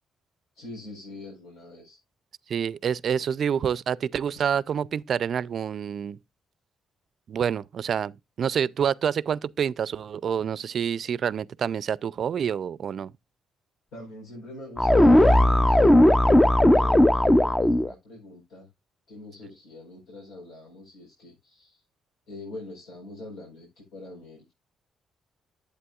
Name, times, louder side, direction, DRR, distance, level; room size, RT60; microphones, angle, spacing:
voice 1, 0.5-2.0 3.2-3.3 13.9-18.7 19.1-21.8 22.3-24.5, left 2 dB, 90° left, 4.3 m, -44 dB
voice 2, 2.5-6.2 7.3-13.1, right 8 dB, 55° right, 0.4 m, -27 dB
sound 1, 14.8-17.9, left 1 dB, 15° left, 0.5 m, -17 dB
11.0 x 8.3 x 2.4 m
cardioid pair, 90°, 0 cm